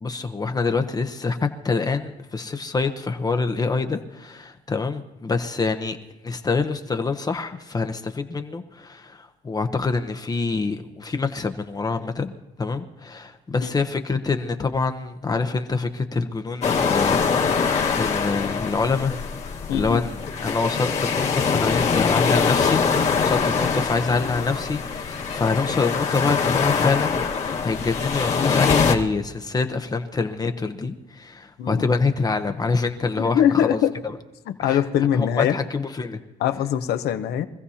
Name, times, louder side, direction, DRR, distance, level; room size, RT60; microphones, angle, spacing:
voice 1, 0.0-6.0 6.2-12.3 12.6-19.2 19.7-27.2 27.6-33.8 34.6-34.8 35.1-36.2, left 4 dB, 25° left, 6 dB, 0.8 m, -26 dB
sound 1, 16.6-29.0, left 5 dB, 40° left, 1.5 m, -23 dB
voice 2, 19.7-20.1 31.6-31.9 33.2-33.9 34.5-35.6 36.4-37.5, left 10 dB, 70° left, 9 dB, 0.9 m, -22 dB
24.5 x 15.0 x 2.8 m, 1.0 s
cardioid pair, 110°, 17 cm